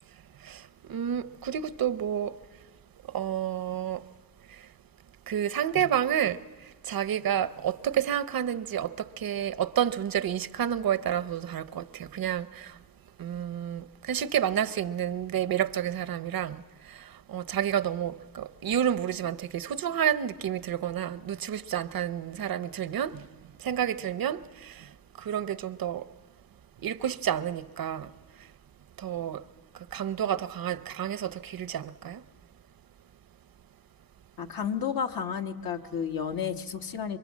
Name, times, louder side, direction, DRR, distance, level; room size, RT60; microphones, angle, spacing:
voice 1, 0.9-2.3 3.1-4.0 5.3-6.4 6.9-12.7 13.2-16.6 17.3-23.2 23.6-24.7 25.2-26.1 26.8-28.1 29.0-29.4 29.9-32.2, right 9 dB, 75° right, 0.8 m, -29 dB
voice 2, 34.4-37.2, left 7 dB, 80° left, 1.3 m, -32 dB
26.5 x 24.0 x 7.4 m
cardioid pair, 80°, 36 cm